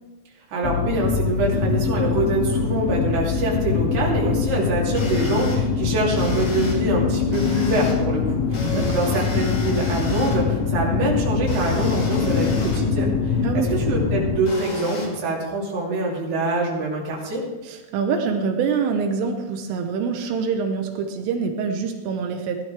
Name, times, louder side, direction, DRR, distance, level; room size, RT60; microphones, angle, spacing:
voice 1, 0.5-17.4, right 2 dB, 45° right, -4 dB, 3.5 m, -25 dB
sound 1, 0.6-14.4, left 5 dB, 80° left, 3.5 m, -23 dB
sound 2, 4.9-5.5 6.1-6.7 7.3-7.9 8.5-10.4 11.5-12.8 14.5-15.1, left 2 dB, 45° left, 2.7 m, -34 dB
voice 2, 8.6-9.0 13.4-13.7 17.6-22.6, right 5 dB, 80° right, 4 dB, 3.4 m, -25 dB
17.5 x 12.0 x 3.4 m, 1.2 s
omnidirectional pair, 5.8 m